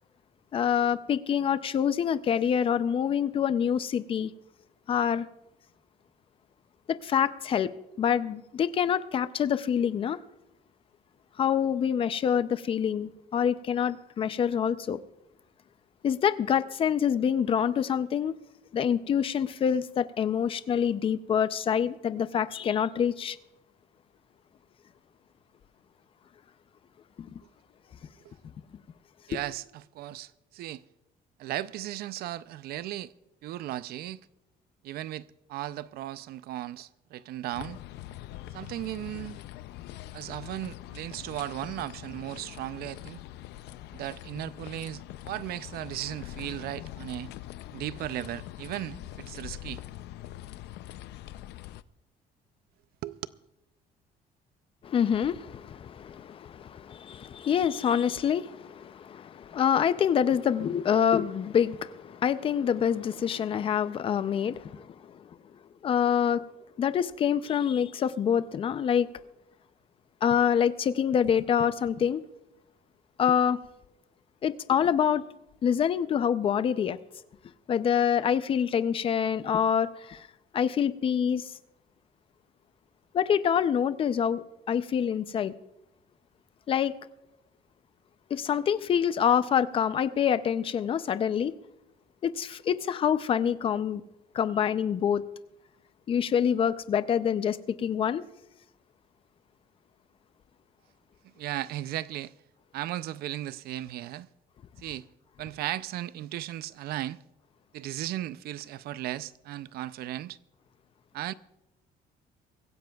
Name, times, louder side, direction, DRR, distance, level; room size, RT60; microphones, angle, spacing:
voice 1, 0.5-4.3 4.9-5.3 6.9-7.7 8.0-10.2 11.4-15.0 16.0-18.3 18.7-23.4 27.2-27.4 29.3-29.4 54.8-65.0 65.8-66.4 66.8-69.1 70.2-72.2 73.2-73.6 74.4-75.2 75.6-77.0 77.7-80.3 80.5-81.5 83.1-85.5 86.7-86.9 88.3-91.5 92.2-94.0 94.3-95.2 96.1-98.2, left 8 dB, 35° left, 0.5 m, -26 dB
voice 2, 29.3-30.8 31.4-33.1 33.4-34.3 34.8-37.8 38.5-39.4 40.1-43.2 43.9-47.3 47.7-49.8 53.0-53.2 101.4-102.3 102.7-104.3 104.8-105.1 105.4-107.2 107.7-110.4 111.1-111.3, right 14 dB, 70° right, 0.5 m, -36 dB
sound 1, 37.5-51.8, left 14 dB, 90° left, 0.5 m, -43 dB
24.0 x 15.5 x 2.3 m
cardioid pair, 165°, 17 cm